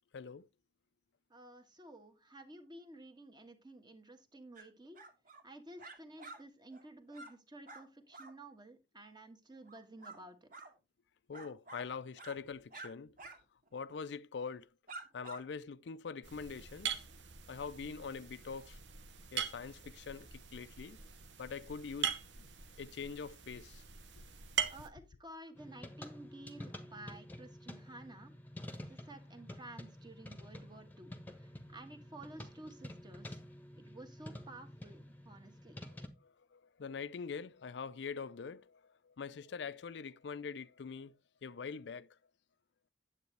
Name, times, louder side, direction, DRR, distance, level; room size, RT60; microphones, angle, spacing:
voice 1, 0.1-0.5 11.3-13.3 13.7-14.7 15.1-17.0 17.5-18.8 19.3-21.0 21.4-22.5 22.8-23.8 36.2-41.2 41.4-42.2, left 5 dB, 75° left, 0.4 m, -44 dB
voice 2, 1.3-5.0 5.4-10.5 24.7-28.3 28.9-33.4 33.8-35.8, right 1 dB, 25° right, 1.4 m, -53 dB
sound 1, 4.6-4.7 4.9-5.4 5.8-6.4 6.7-6.9 7.1-7.3 7.7-7.9 8.1-8.3 9.7-10.2 10.5-10.7 11.3-11.9 12.2-12.4 12.7-12.9 13.2-13.4 13.7-13.8 14.5-14.6 14.9-15.4, right 2 dB, 50° right, 2.1 m, -50 dB
sound 2, 16.2-24.9, right 8 dB, 90° right, 1.0 m, -42 dB
sound 3, 25.5-36.1, left 1 dB, 10° left, 1.1 m, -50 dB
9.4 x 8.1 x 3.3 m
head